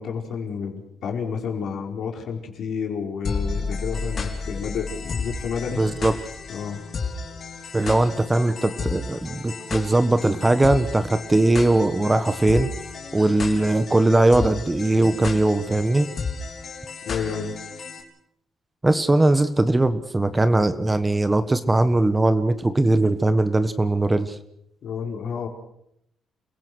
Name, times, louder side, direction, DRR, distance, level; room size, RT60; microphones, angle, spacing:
voice 1, 0.0-5.8 6.5-6.8 17.0-17.5 24.8-25.5, left 6 dB, 65° left, 2 dB, 4.7 m, -30 dB
sound 1, 3.2-18.0, left 4 dB, 50° left, 3.7 m, -32 dB
voice 2, 5.8-6.1 7.7-12.7 13.1-16.1 18.8-24.4, right 2 dB, 15° right, 11 dB, 1.4 m, -20 dB
28.5 x 17.0 x 6.4 m, 0.75 s
cardioid pair, 90°, 0 cm